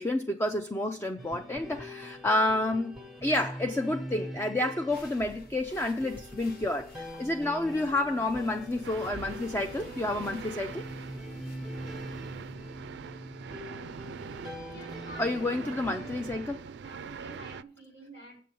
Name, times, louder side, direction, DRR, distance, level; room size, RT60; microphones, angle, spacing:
voice 1, 0.0-3.0 3.2-10.9 15.2-16.6, left 1 dB, 15° left, 0.4 m, -29 dB
sound 1, 1.2-16.4, equal, ahead, 0.9 m, -43 dB
sound 2, 4.9-12.5, left 1 dB, 55° left, 1.1 m, -52 dB
sound 3, 8.8-17.6, right 6 dB, 65° right, 0.3 m, -43 dB
voice 2, 14.3-18.4, right 2 dB, 85° left, 4.4 m, -49 dB
7.5 x 7.0 x 5.3 m
head